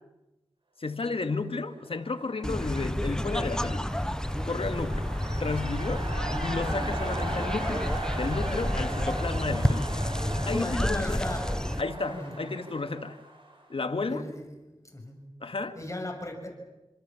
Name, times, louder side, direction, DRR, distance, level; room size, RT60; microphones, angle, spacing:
voice 1, 0.8-3.9 4.4-5.1 5.4-6.1 6.4-7.9 8.2-10.0 10.5-11.2 11.8-13.2 13.7-14.3 15.4-15.8, left 3 dB, 70° left, 8 dB, 2.0 m, -32 dB
sound 1, 1.9-13.8, right 2 dB, 55° right, 7.1 m, -39 dB
sound 2, 2.4-11.8, equal, 5° left, 1.0 m, -30 dB
voice 2, 10.2-11.5 12.1-12.3 14.1-14.4 14.8-15.2 15.7-16.5, left 1 dB, 30° left, 3 dB, 6.3 m, -37 dB
27.5 x 26.5 x 7.3 m, 1.0 s
wide cardioid pair, 60°, 10 cm